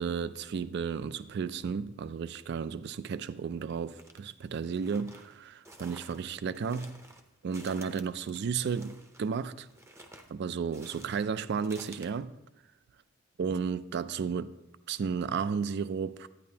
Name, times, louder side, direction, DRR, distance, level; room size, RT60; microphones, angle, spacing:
voice 1, 0.0-7.0 7.4-9.7 10.3-12.3 13.4-14.5 14.9-16.3, right 6 dB, 55° right, 0.3 m, -33 dB
sound 1, 4.0-4.2 4.7-12.1, right 1 dB, 15° right, 0.6 m, -52 dB
10.5 x 9.5 x 2.8 m
head